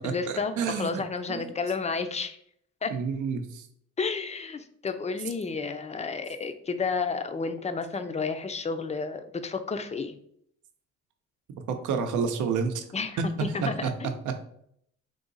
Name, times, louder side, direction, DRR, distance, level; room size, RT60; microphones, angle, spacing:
voice 1, 0.0-2.4 2.8-2.9 4.0-10.2 12.9-14.1, left 4 dB, 25° left, 8 dB, 0.5 m, -31 dB
voice 2, 0.6-1.0 1.3-1.5 2.9-3.7 11.7-12.8 13.6-13.9 14.2-14.4, right 6 dB, 75° right, 6 dB, 0.7 m, -29 dB
3.8 x 2.7 x 3.9 m, 0.70 s
cardioid pair, 90°, 30 cm